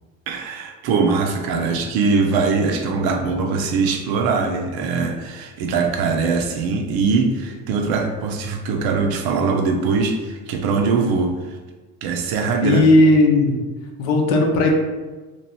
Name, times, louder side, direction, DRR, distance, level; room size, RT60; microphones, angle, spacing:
voice 1, 0.3-11.4 12.0-12.8, right 4 dB, 55° right, 4 dB, 0.6 m, -21 dB
voice 2, 12.6-13.6 14.0-14.7, left 2 dB, 70° left, 2 dB, 0.7 m, -16 dB
2.9 x 2.6 x 3.0 m, 1.3 s
figure-of-eight pair, 55°, 44 cm